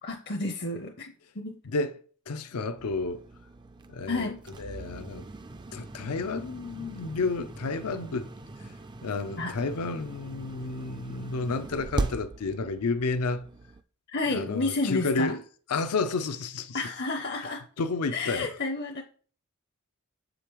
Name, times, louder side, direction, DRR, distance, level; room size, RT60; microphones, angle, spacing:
voice 1, 0.0-1.6 4.1-4.4 9.4-9.5 14.1-15.4 16.7-17.6 18.1-19.0, left 3 dB, 45° left, 0.6 m, -31 dB
voice 2, 2.3-3.2 3.9-4.3 4.6-5.2 5.7-8.3 8.6-8.7 9.0-13.5 14.3-15.4 15.7-16.8 17.8-18.5, left 3 dB, 85° left, 0.5 m, -31 dB
sound 1, 2.8-13.8, right 2 dB, 20° right, 0.3 m, -40 dB
7.4 x 5.1 x 3.0 m
head